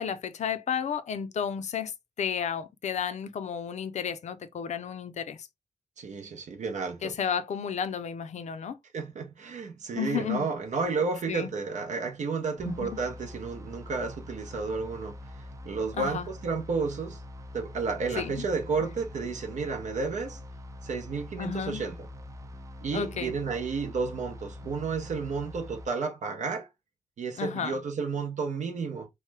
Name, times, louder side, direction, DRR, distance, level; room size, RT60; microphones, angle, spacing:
voice 1, 0.0-5.5 7.0-8.8 9.9-10.5 11.3-11.5 12.7-12.9 16.0-16.3 18.2-18.4 21.4-21.8 22.9-23.4 27.4-27.8, left 7 dB, 70° left, 0.5 m, -32 dB
voice 2, 6.0-7.1 8.9-17.2 17.5-20.4 20.8-22.1 22.8-26.7 27.2-29.1, right 4 dB, 75° right, 0.7 m, -32 dB
sound 1, 12.6-25.9, left 1 dB, 25° right, 0.4 m, -44 dB
3.1 x 2.1 x 3.2 m
wide cardioid pair, 125°, 12 cm